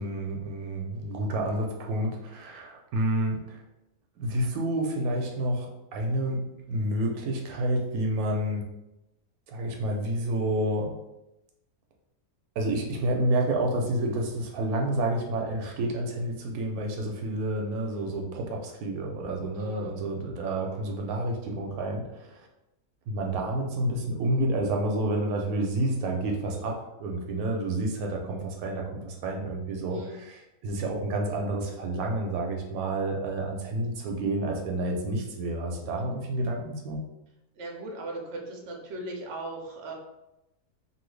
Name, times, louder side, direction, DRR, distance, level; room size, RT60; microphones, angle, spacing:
voice 1, 0.0-3.6 4.2-8.6 9.5-11.0 12.6-22.5 23.1-37.0, right 1 dB, 80° right, 1 dB, 1.0 m, -29 dB
voice 2, 19.6-19.9 29.9-30.2 36.0-36.1 37.6-39.9, right 2 dB, 60° right, 1 dB, 0.7 m, -38 dB
2.7 x 2.6 x 3.1 m, 0.92 s
omnidirectional pair, 1.6 m